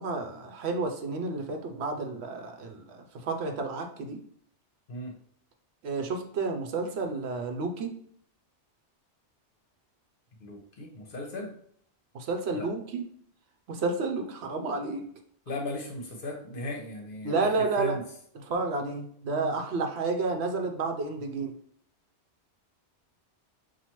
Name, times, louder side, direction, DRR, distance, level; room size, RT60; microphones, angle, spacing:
voice 1, 0.0-4.2 5.8-7.9 12.1-13.0 13.7-15.1 17.2-18.0 18.3-21.5, right 3 dB, 70° right, 5 dB, 0.9 m, -31 dB
voice 2, 10.4-11.5 12.5-12.7 15.5-18.0, left 2 dB, 55° left, 2 dB, 0.9 m, -37 dB
5.6 x 2.4 x 3.0 m, 0.62 s
omnidirectional pair, 1.2 m